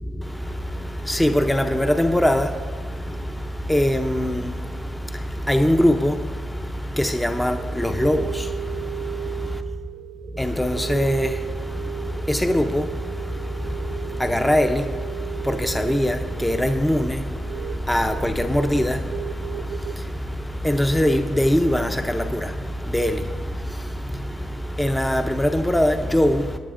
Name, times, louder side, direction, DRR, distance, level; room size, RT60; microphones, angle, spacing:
voice 1, 0.0-9.6 10.3-26.6, equal, 10° left, 0.6 m, -23 dB
sound 1, 7.6-20.0, right 12 dB, 65° right, 0.4 m, -35 dB
19.0 x 9.7 x 2.5 m
cardioid pair, 90°, 0 cm